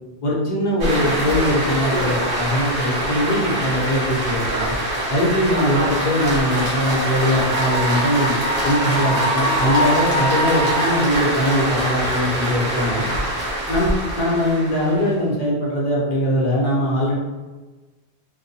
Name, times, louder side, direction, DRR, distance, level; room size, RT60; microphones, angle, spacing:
voice 1, 0.2-4.7 5.1-8.4 8.6-13.0 13.7-17.2, equal, 50° left, -6 dB, 0.8 m, -21 dB
sound 1, 0.8-15.1, right 1 dB, 75° right, 1.1 m, -23 dB
2.7 x 2.2 x 2.6 m, 1.2 s
omnidirectional pair, 1.1 m